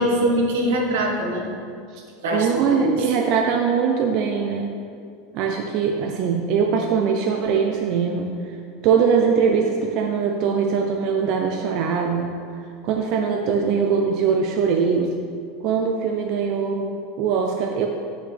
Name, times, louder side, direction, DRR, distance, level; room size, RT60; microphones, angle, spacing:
voice 1, 0.0-1.5 2.2-3.0, right 1 dB, 80° right, 1 dB, 1.4 m, -22 dB
voice 2, 2.3-4.7 5.3-8.3 8.8-12.3 12.8-15.2 15.6-17.9, right 6 dB, 45° right, 2 dB, 0.5 m, -22 dB
10.0 x 6.1 x 3.4 m, 2.3 s
supercardioid pair, 165°, 0 cm